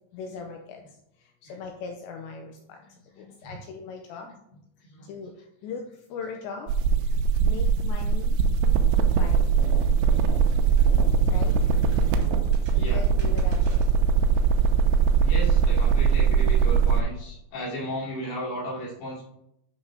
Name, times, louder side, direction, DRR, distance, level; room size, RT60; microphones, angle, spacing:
voice 1, 0.1-0.8 1.5-2.8 3.2-4.3 5.1-5.3 5.6-5.8 6.1-6.7 7.4-8.4 9.0-9.7 11.3-11.6 12.7-13.9, left 5 dB, 85° left, 3 dB, 2.6 m, -39 dB
voice 2, 3.1-3.5 4.3-4.4 4.8-5.1 7.1-8.1 11.4-13.1 14.3-14.4 15.2-19.2, equal, 50° left, -6 dB, 3.8 m, -37 dB
sound 1, 6.7-17.0, right 6 dB, 80° right, 3.1 m, -21 dB
sound 2, 9.5-14.0, right 3 dB, 60° right, 2.6 m, -42 dB
11.0 x 6.1 x 2.7 m, 0.78 s
omnidirectional pair, 5.8 m